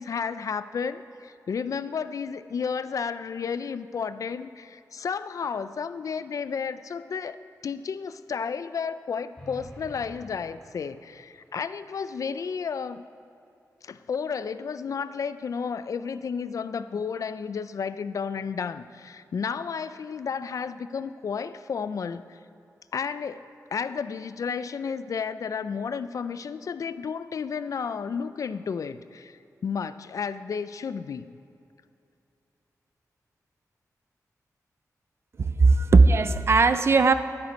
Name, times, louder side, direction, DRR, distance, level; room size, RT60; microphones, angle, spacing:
voice 1, 0.0-13.0 13.8-22.4 22.9-31.3, left 6 dB, 60° left, 13 dB, 0.4 m, -32 dB
sound 1, 9.3-11.4, equal, 5° left, 3.6 m, -48 dB
voice 2, 35.4-37.1, right 3 dB, 45° right, 11 dB, 0.5 m, -18 dB
12.5 x 12.0 x 5.2 m, 2.7 s
wide cardioid pair, 175°, 6 cm